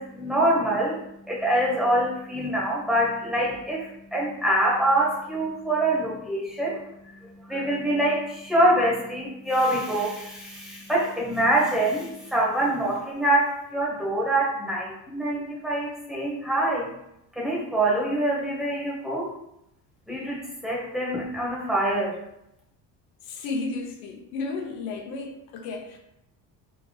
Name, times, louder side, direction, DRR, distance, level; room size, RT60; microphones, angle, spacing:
voice 1, 0.0-16.9 17.3-19.3 20.1-22.2, right 1 dB, ahead, -4 dB, 0.9 m, -25 dB
voice 2, 23.2-26.0, left 3 dB, 85° left, 1 dB, 0.8 m, -33 dB
3.8 x 3.0 x 2.2 m, 0.81 s
cardioid pair, 140°, 36 cm